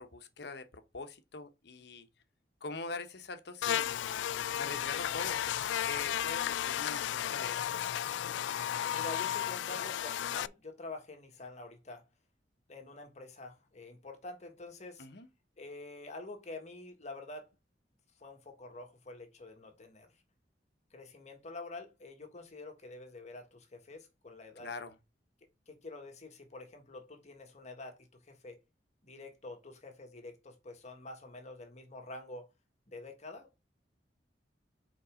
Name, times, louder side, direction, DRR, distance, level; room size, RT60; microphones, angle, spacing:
voice 1, 0.0-2.1 2.6-4.0 4.6-7.8 15.0-15.3 24.6-25.0, left 4 dB, 65° left, 1.0 m, -43 dB
Buzz, 3.6-10.5, left 10 dB, 80° left, 0.3 m, -34 dB
voice 2, 8.9-12.0 12.7-15.1 15.6-17.5 18.2-20.1 20.9-24.7 25.7-28.6 29.0-32.5 32.9-33.6, left 2 dB, 40° left, 1.5 m, -47 dB
5.4 x 4.6 x 5.1 m
head